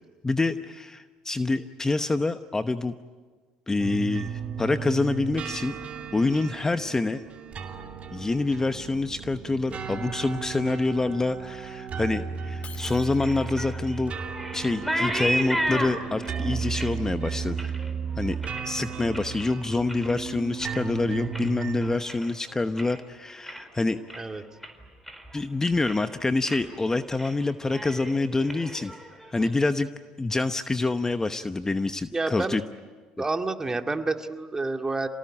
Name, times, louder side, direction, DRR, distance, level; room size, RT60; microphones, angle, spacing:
voice 1, 0.2-2.9 3.7-5.8 6.1-7.2 8.1-14.1 14.5-17.7 18.2-18.4 18.6-24.4 25.3-28.9 29.3-29.9 30.2-32.6, left 3 dB, 20° left, 10 dB, 1.0 m, -26 dB
sound 1, 3.8-22.0, right 6 dB, 45° right, 2.7 m, -35 dB
Shatter, 12.6-13.7, left 7 dB, 45° left, 2.7 m, -46 dB
sound 2, 12.8-19.5 19.8-20.3 20.6-23.0 23.3-23.8 24.1-24.2 24.6-25.4 25.7-26.1 26.5-26.7 27.0-27.4 27.6-29.5, equal, ahead, 4.5 m, -34 dB
voice 2, 32.1-32.6 33.2-35.1, right 3 dB, 20° right, 6 dB, 2.1 m, -29 dB
28.0 x 18.5 x 10.0 m, 1.5 s
hypercardioid pair, 70°, 3 cm